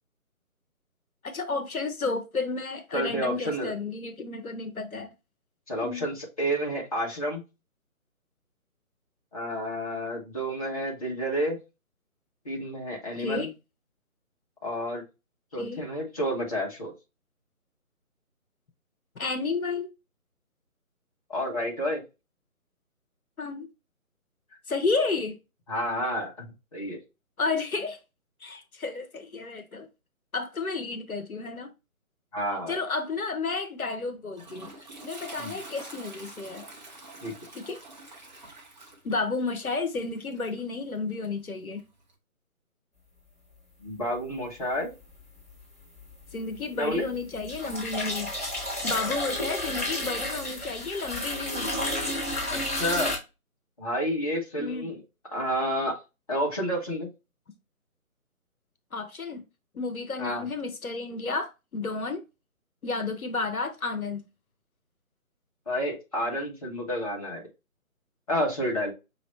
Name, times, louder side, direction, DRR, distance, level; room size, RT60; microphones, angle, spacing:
voice 1, 1.2-5.1 5.8-6.1 13.2-13.5 15.6-15.8 19.2-19.9 23.4-23.7 24.7-25.4 27.4-28.0 28.4-29.9 30.3-31.7 32.7-34.7 35.0-36.6 37.5-37.8 39.0-41.8 46.3-48.3 48.6-51.7 54.6-54.9 58.9-59.4 59.7-62.2 62.8-64.2, left 3 dB, 75° left, 0.9 m, -31 dB
voice 2, 2.9-3.7 5.7-7.4 9.3-11.6 12.4-13.5 14.6-15.0 15.5-16.9 21.3-22.0 25.7-26.4 26.7-27.0 32.3-32.8 35.4-35.5 37.2-37.3 43.8-44.9 46.8-47.0 52.5-53.2 53.8-55.0 55.3-56.0 56.3-57.1 60.2-60.5 65.7-67.5 68.3-68.9, equal, 25° left, 1.1 m, -30 dB
Toilet flush, 33.8-42.1, right 2 dB, 30° right, 0.9 m, -47 dB
sound 1, 45.0-45.6 46.0-53.2, left 1 dB, 5° left, 1.5 m, -32 dB
5.6 x 3.0 x 3.0 m
figure-of-eight pair, 150°, 43 cm